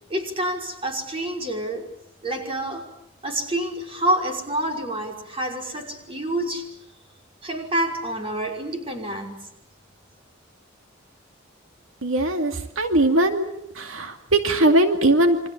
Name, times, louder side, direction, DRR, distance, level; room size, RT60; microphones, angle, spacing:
voice 1, 0.1-1.9 2.2-2.9 3.2-6.7 7.4-9.5, right 1 dB, 25° right, 2 dB, 5.5 m, -27 dB
voice 2, 12.0-13.5 13.8-15.5, right 1 dB, 90° right, 6 dB, 2.4 m, -20 dB
28.5 x 25.5 x 7.4 m, 0.79 s
head